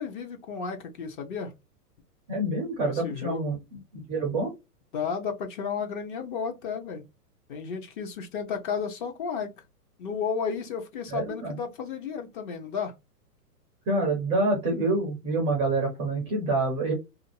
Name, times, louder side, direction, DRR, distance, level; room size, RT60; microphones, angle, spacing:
voice 1, 0.0-1.5 2.8-3.6 4.9-7.0 7.5-9.5 10.0-12.9, left 6 dB, 35° left, 0.6 m, -33 dB
voice 2, 2.3-3.6 4.1-4.5 11.1-11.6 13.9-16.9, right 2 dB, 15° right, 0.4 m, -27 dB
2.5 x 2.3 x 2.7 m
hypercardioid pair, 135°, 47 cm